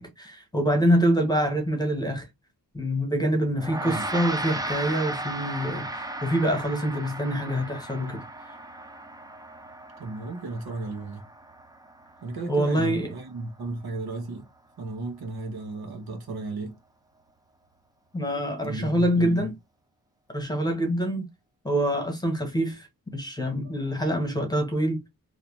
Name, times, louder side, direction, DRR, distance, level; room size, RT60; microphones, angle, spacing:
voice 1, 0.0-2.2 2.7-8.2 12.5-13.1 18.1-19.5 20.3-21.2 21.6-22.9 23.1-25.1, equal, 10° left, 1.0 m, -25 dB
Gong, 3.6-13.2, right 1 dB, 10° right, 0.4 m, -36 dB
voice 2, 10.0-11.2 12.2-14.5 14.8-16.7 18.6-19.5, right 2 dB, 85° right, 1.1 m, -34 dB
3.3 x 2.8 x 2.8 m
wide cardioid pair, 145°, 36 cm